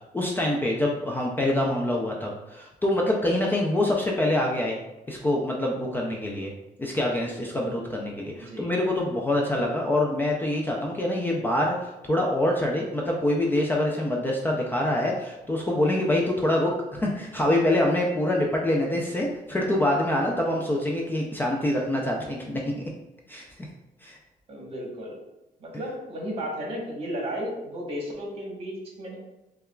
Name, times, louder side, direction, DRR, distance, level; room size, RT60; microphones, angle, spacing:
voice 1, 0.1-4.8 5.1-6.5 6.8-22.8 23.3-23.4 24.0-24.2, left 1 dB, 15° left, -2 dB, 0.4 m, -25 dB
voice 2, 8.3-8.7 9.4-9.6 24.5-25.2 25.6-29.2, equal, 40° right, -2 dB, 1.1 m, -34 dB
6.6 x 2.3 x 2.2 m, 0.97 s
cardioid pair, 165°, 15 cm